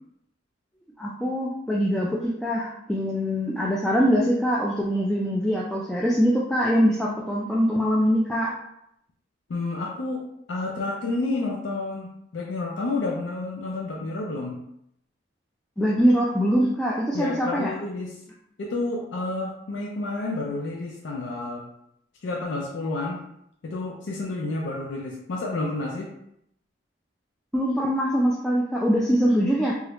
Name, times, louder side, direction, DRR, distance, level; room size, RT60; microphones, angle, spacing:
voice 1, 1.0-8.6 15.8-17.7 27.5-29.7, equal, 5° left, -5 dB, 0.3 m, -23 dB
voice 2, 9.5-12.1 12.3-14.6 17.1-18.1 18.6-21.7 22.2-23.2 23.6-26.1, left 2 dB, 85° left, -1 dB, 0.4 m, -30 dB
3.0 x 2.4 x 3.0 m, 0.75 s
head